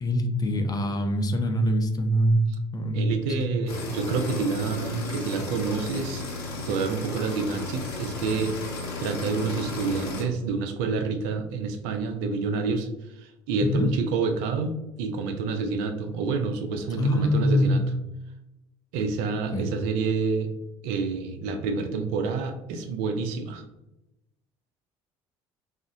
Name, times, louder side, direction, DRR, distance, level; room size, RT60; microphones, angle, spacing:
voice 1, 0.0-2.4 2.7-3.1 3.4-3.5 13.6-13.9 17.0-17.9 19.5-19.7, equal, 30° left, 5 dB, 0.5 m, -24 dB
voice 2, 2.9-6.2 6.6-8.5 9.0-12.9 13.2-17.8 18.9-20.5 20.8-23.6, right 4 dB, 70° right, 6 dB, 0.4 m, -28 dB
sound 1, 3.7-10.2, left 3 dB, 80° left, 0.7 m, -34 dB
3.6 x 2.1 x 2.6 m, 0.93 s
hypercardioid pair, 60°, 13 cm